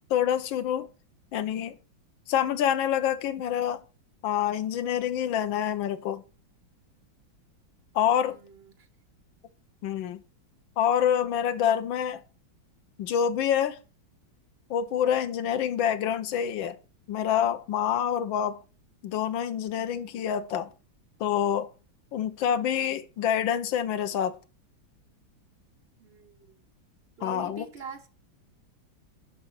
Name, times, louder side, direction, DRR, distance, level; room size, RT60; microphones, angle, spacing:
voice 1, 0.1-0.9 1.3-1.8 2.3-3.8 4.2-6.2 7.9-8.4 9.8-10.2 10.8-12.2 13.0-13.8 14.7-16.8 17.1-18.6 19.0-20.7 21.2-21.7 22.1-24.4 27.2-27.7, left 9 dB, 75° left, 1.5 m, -27 dB
voice 2, 8.0-8.7 15.3-15.6 22.7-23.0 26.0-26.6 27.2-28.1, right 5 dB, 50° right, 0.8 m, -45 dB
11.0 x 4.2 x 5.6 m
omnidirectional pair, 2.2 m